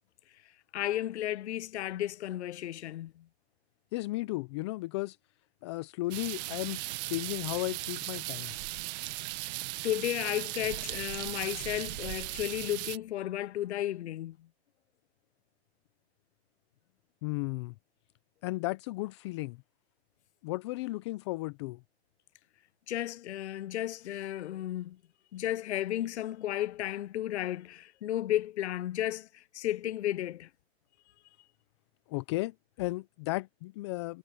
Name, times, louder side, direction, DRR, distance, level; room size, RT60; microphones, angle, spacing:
voice 1, 0.7-3.2 9.4-9.5 9.8-14.4 22.9-25.0 25.3-30.5, left 13 dB, 80° left, 0.6 m, -33 dB
voice 2, 3.9-5.2 5.6-8.5 17.2-17.7 18.4-19.6 20.4-21.8 32.1-34.2, left 21 dB, 25° left, 0.4 m, -35 dB
sound 1, 6.1-13.0, right 21 dB, 40° right, 1.3 m, -37 dB
hypercardioid pair, 145°, 33 cm